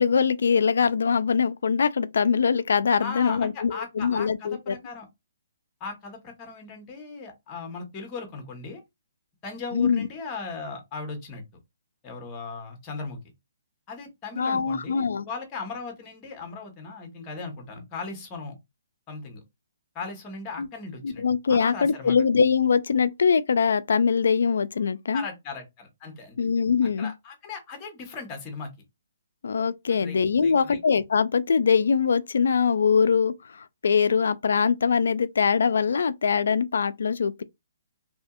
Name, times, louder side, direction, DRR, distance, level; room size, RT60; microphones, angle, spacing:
voice 1, 0.0-4.7 9.7-10.1 14.3-15.3 20.6-20.7 21.0-25.2 26.4-27.1 29.4-37.4, left 6 dB, 80° left, 0.3 m, -23 dB
voice 2, 3.0-5.1 5.8-8.8 9.4-11.4 12.0-13.2 13.9-18.5 19.1-19.4 19.9-22.2 25.1-26.4 27.0-28.7 29.9-30.8, left 4 dB, 20° left, 1.0 m, -38 dB
2.7 x 2.6 x 2.4 m
hypercardioid pair, 160°, 0 cm